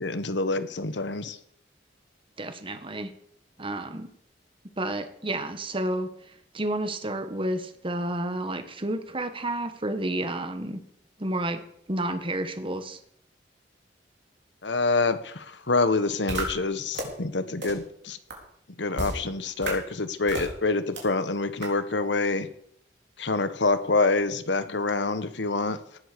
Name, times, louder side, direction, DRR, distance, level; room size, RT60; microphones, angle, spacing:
voice 1, 0.0-1.4 14.6-18.2 18.8-22.5 23.2-25.8, left 3 dB, 80° left, 12 dB, 1.3 m, -26 dB
voice 2, 2.4-3.1 3.6-4.1 4.8-10.8 11.2-11.6 11.9-13.0, right 1 dB, 30° right, 9 dB, 1.5 m, -31 dB
sound 1, 16.3-16.4 16.9-17.0 17.6-17.7 18.3-18.4 19.0-19.1 19.6-19.7 20.3-20.5 21.0-21.1 21.6-21.7, right 2 dB, 70° right, 4.6 m, -30 dB
18.0 x 8.1 x 6.9 m, 0.68 s
head